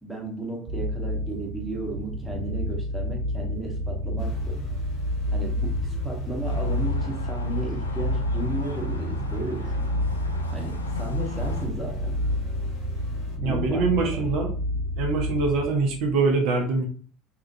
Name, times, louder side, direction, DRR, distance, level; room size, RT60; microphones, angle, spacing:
voice 1, 0.0-4.6 5.3-9.9 10.5-12.2 13.4-14.2, right 2 dB, 5° right, -2 dB, 1.0 m, -34 dB
sound 1, 0.7-15.7, left 1 dB, 35° right, 1.5 m, -29 dB
sound 2, 4.2-7.0 11.3-13.4, left 1 dB, 55° left, 1.1 m, -38 dB
sound 3, 6.4-11.7, left 3 dB, 85° left, 0.4 m, -38 dB
voice 2, 13.4-14.5 15.0-16.9, right 4 dB, 55° right, 2 dB, 0.6 m, -24 dB
2.8 x 2.3 x 2.6 m, 0.42 s
figure-of-eight pair, 70°, 0 cm